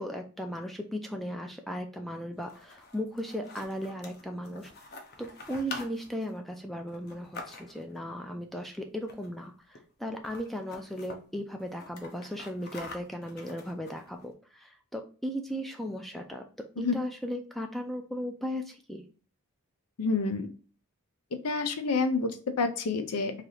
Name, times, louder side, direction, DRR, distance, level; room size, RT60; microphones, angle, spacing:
voice 1, 0.0-4.7 5.2-16.4 16.8-19.0, equal, ahead, 3 dB, 0.3 m, -36 dB
sound 1, 2.3-8.0 9.0-9.5 9.7-9.8 10.1-11.2 11.6-14.2, left 2 dB, 45° left, 0.7 m, -46 dB
voice 2, 20.0-20.5 21.4-23.3, left 4 dB, 90° left, 7 dB, 0.6 m, -28 dB
3.3 x 2.8 x 3.8 m, 0.39 s
head